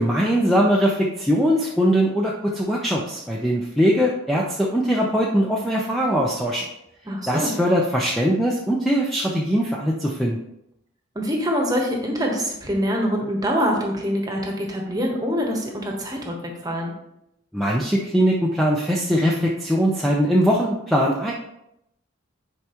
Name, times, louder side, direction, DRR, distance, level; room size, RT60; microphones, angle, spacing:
voice 1, 0.0-6.7 7.3-10.4 17.5-21.3, equal, ahead, -3 dB, 0.5 m, -21 dB
voice 2, 7.1-7.6 11.1-16.9, equal, 20° right, 1 dB, 1.2 m, -25 dB
9.7 x 4.6 x 3.0 m, 0.82 s
head